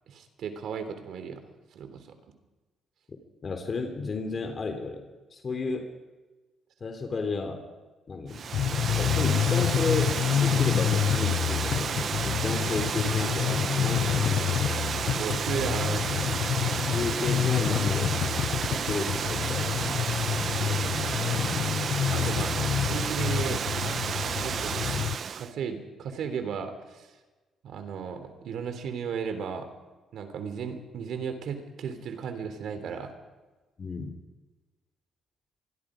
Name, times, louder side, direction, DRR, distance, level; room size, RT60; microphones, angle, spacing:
voice 1, 0.1-1.4 1.7-2.1 15.2-16.4 20.6-21.4 22.1-23.6 24.4-24.8 25.3-27.1 27.6-29.7 30.1-33.1, right 6 dB, 70° right, 8 dB, 3.3 m, -35 dB
voice 2, 3.4-5.0 5.3-5.9 6.8-7.6 8.1-8.5 9.0-11.9 12.2-14.8 16.9-18.2 18.7-19.6 33.8-34.1, left 4 dB, 40° left, 5 dB, 3.3 m, -32 dB
Water, 8.3-25.5, right 7 dB, 55° right, 0.8 m, -31 dB
sound 1, 8.5-25.2, left 10 dB, 75° left, 0.7 m, -28 dB
26.0 x 22.0 x 5.1 m, 1.2 s
cardioid pair, 90°, 0 cm